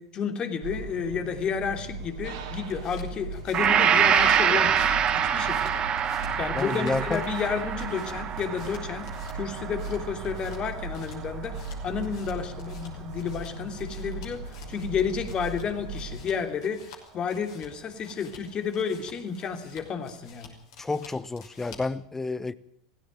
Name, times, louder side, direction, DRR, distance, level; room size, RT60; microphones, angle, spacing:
voice 1, 0.0-4.9 5.1-5.8 6.4-9.1 9.3-16.9 17.1-20.5, left 6 dB, 35° left, 3.1 m, -31 dB
sound 1, 0.6-16.2, right 3 dB, 65° right, 3.5 m, -38 dB
sound 2, 2.4-22.0, left 5 dB, 65° left, 5.7 m, -52 dB
Gong, 3.5-11.6, right 8 dB, 35° right, 1.9 m, -26 dB
voice 2, 6.5-7.2 20.8-22.5, left 3 dB, 10° left, 0.9 m, -30 dB
18.0 x 16.5 x 9.0 m
hypercardioid pair, 85°, 3 cm